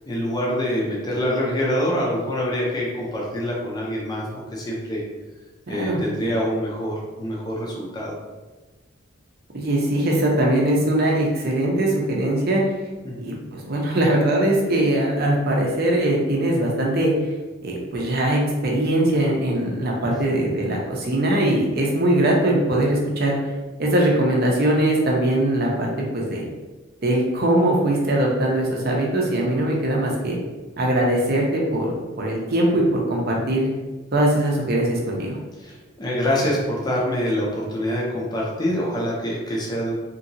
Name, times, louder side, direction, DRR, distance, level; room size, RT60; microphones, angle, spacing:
voice 1, 0.1-4.2 4.5-5.0 5.7-8.2 13.0-13.4 29.8-29.9 35.6-39.9, equal, 20° left, -4 dB, 0.5 m, -25 dB
voice 2, 5.7-6.0 9.5-12.6 13.2-17.3 17.6-23.4 23.8-26.4 27.0-30.4 30.8-33.7 34.1-35.4, right 1 dB, 45° right, -1 dB, 0.6 m, -21 dB
2.9 x 2.7 x 2.6 m, 1.2 s
head